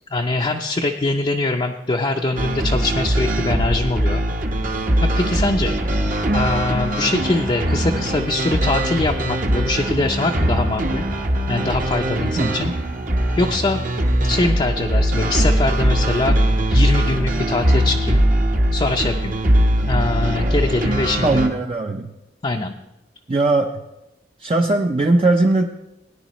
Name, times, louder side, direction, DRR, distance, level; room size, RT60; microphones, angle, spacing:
voice 1, 0.1-4.2 5.0-5.8 6.3-11.0 11.5-12.7 13.3-13.8 14.2-16.4 16.7-18.2 18.7-19.3 19.8-21.5 22.4-22.7, left 2 dB, 30° left, 2 dB, 0.5 m, -22 dB
sound 1, 2.4-21.5, right 1 dB, 50° right, 1.0 m, -20 dB
voice 2, 21.2-22.1 23.3-23.7 24.4-25.7, right 2 dB, 35° right, 3 dB, 0.5 m, -18 dB
18.0 x 10.0 x 3.0 m, 0.94 s
head